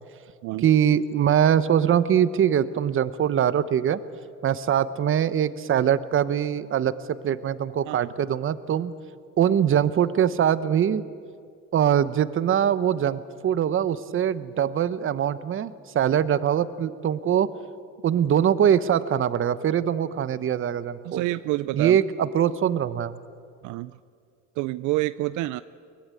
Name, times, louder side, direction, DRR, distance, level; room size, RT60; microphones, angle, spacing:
voice 1, 0.6-4.0 4.4-6.9 7.2-8.9 9.4-11.0 11.7-17.5 18.0-21.2 21.7-23.2, right 9 dB, 40° right, 15 dB, 1.0 m, -22 dB
voice 2, 21.0-22.0 23.6-24.0 24.6-25.6, right 18 dB, 75° right, 15 dB, 0.6 m, -28 dB
23.0 x 20.0 x 9.2 m, 2.3 s
cardioid pair, 115°, 30 cm